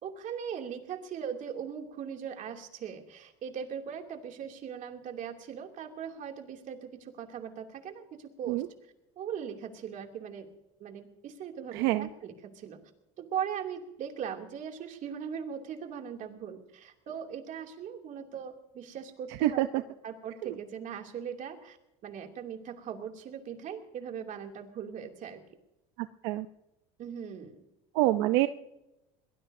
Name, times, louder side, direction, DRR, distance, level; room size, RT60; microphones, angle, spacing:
voice 1, 0.0-8.6 9.2-10.5 10.8-12.8 13.2-21.8 22.0-25.4 27.0-27.6, right 8 dB, 50° right, 3 dB, 2.7 m, -39 dB
voice 2, 11.7-12.1 19.4-19.7 20.4-20.5 26.0-26.5 27.9-28.5, right 16 dB, 80° right, 10 dB, 0.7 m, -26 dB
22.5 x 18.5 x 2.7 m, 0.89 s
supercardioid pair, 110°, 17 cm